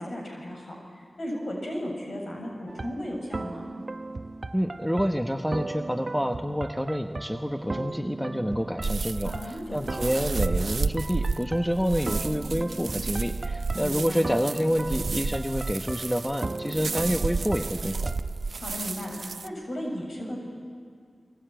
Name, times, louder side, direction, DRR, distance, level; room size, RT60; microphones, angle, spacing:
voice 1, 0.0-3.7 9.2-9.8 13.7-14.2 18.6-19.1 19.4-20.4, equal, 70° left, 0 dB, 7.3 m, -35 dB
sound 1, 2.7-18.2, right 3 dB, 55° right, 0.9 m, -37 dB
voice 2, 4.5-18.1, equal, 5° left, 5 dB, 1.2 m, -28 dB
sound 2, 8.8-19.5, right 4 dB, 80° right, 0.6 m, -32 dB
28.0 x 22.5 x 9.2 m, 2.1 s
cardioid pair, 45°, 0 cm